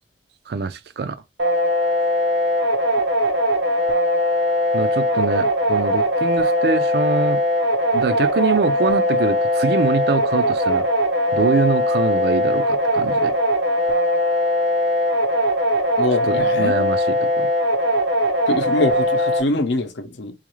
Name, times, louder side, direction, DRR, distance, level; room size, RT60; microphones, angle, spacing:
voice 1, 0.5-1.2 4.7-7.4 7.9-10.9 11.3-13.3 16.2-17.5, right 4 dB, 55° right, 0.4 m, -24 dB
sound 1, 1.4-19.4, left 1 dB, 80° right, 0.9 m, -20 dB
voice 2, 16.0-16.8 18.5-20.3, left 2 dB, 70° left, 0.6 m, -23 dB
3.9 x 2.4 x 3.0 m
head